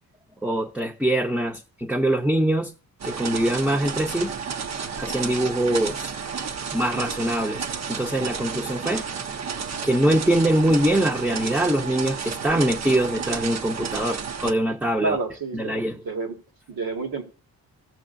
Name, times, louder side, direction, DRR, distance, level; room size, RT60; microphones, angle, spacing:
voice 1, 0.4-2.7 3.0-4.3 5.0-6.1 6.7-9.1 9.8-15.2 15.5-16.0, right 1 dB, 5° right, 0.7 m, -23 dB
sound 1, 3.0-14.5, right 6 dB, 50° right, 0.7 m, -31 dB
voice 2, 15.0-16.4 16.7-17.2, right 3 dB, 80° right, 1.7 m, -29 dB
16.5 x 6.5 x 2.5 m
cardioid pair, 95°, 35 cm